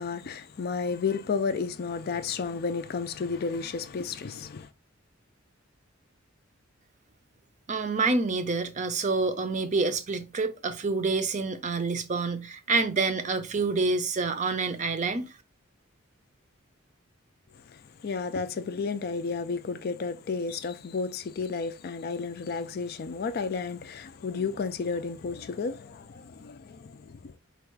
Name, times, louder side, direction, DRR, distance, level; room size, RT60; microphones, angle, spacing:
voice 1, 0.0-4.7 17.5-27.4, left 5 dB, 45° left, 0.4 m, -32 dB
voice 2, 7.7-15.4, right 3 dB, 35° right, 0.5 m, -27 dB
4.5 x 2.3 x 4.6 m
head